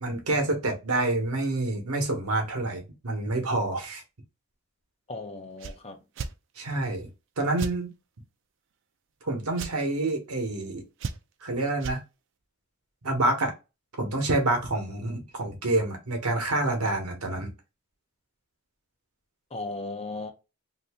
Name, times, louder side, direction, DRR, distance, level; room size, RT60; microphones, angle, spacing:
voice 1, 0.0-4.0 6.6-7.1 7.4-7.9 9.3-10.8 11.4-12.0 13.0-13.5 14.0-17.5, right 2 dB, 80° right, 1.0 m, -27 dB
voice 2, 5.1-6.0 19.5-20.3, left 2 dB, 25° left, 0.6 m, -36 dB
sound 1, 5.6-5.8 6.1-6.3 7.6-7.8 9.5-9.7 11.0-11.4 11.8-12.0, right 5 dB, 55° right, 0.4 m, -34 dB
2.7 x 2.6 x 3.5 m
head